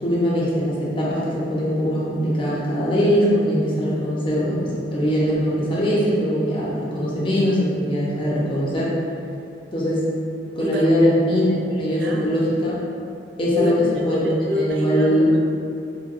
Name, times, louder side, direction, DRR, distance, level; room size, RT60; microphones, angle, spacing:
voice 1, 0.0-8.9 9.7-10.0 10.6-12.8 13.4-14.2 14.6-15.3, equal, 30° left, -7 dB, 0.6 m, -21 dB
voice 2, 10.6-10.9 11.9-12.4 13.5-15.4, equal, 65° right, 0 dB, 0.3 m, -27 dB
3.9 x 2.2 x 2.5 m, 2.5 s
head